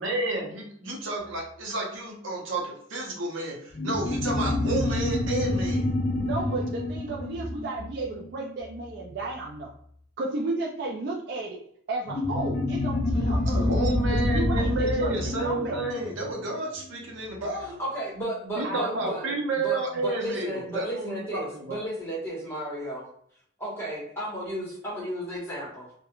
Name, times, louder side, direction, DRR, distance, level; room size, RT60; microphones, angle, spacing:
voice 1, 0.0-5.9 13.5-17.8 18.6-21.8, right 2 dB, 75° right, -1 dB, 0.7 m, -31 dB
sound 1, 3.7-8.7 12.1-17.0, left 1 dB, 40° left, 0.3 m, -28 dB
voice 2, 6.2-9.7 10.2-11.6 11.9-13.7 14.2-15.9 18.6-19.4, right 2 dB, 55° right, -1 dB, 0.3 m, -33 dB
voice 3, 17.6-19.2 19.5-23.1 23.6-25.9, right 1 dB, 10° left, -6 dB, 1.0 m, -34 dB
2.3 x 2.1 x 2.9 m, 0.64 s
head